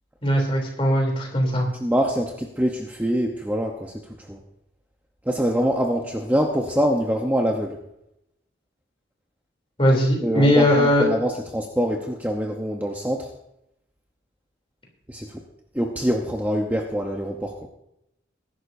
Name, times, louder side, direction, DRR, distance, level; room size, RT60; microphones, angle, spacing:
voice 1, 0.2-1.7 9.8-11.1, equal, 30° left, 1 dB, 3.2 m, -19 dB
voice 2, 1.7-4.4 5.2-7.8 10.2-13.3 15.1-15.4 15.7-17.7, equal, 10° right, 1 dB, 0.8 m, -24 dB
21.0 x 11.5 x 2.7 m, 0.83 s
head